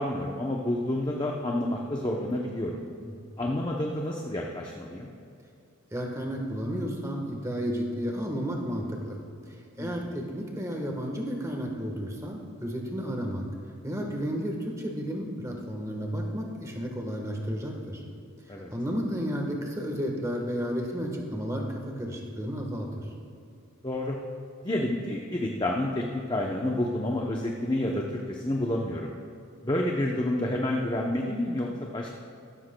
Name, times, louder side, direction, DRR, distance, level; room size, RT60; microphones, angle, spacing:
voice 1, 0.0-2.8 3.4-5.1 9.8-10.1 18.5-18.7 23.8-24.2 24.6-29.1 29.6-32.1, left 1 dB, 20° left, 0 dB, 0.6 m, -29 dB
voice 2, 5.9-9.2 9.5-13.5 13.8-18.0 18.7-23.0, equal, 15° right, 1 dB, 1.2 m, -32 dB
16.0 x 13.0 x 2.2 m, 2.6 s
head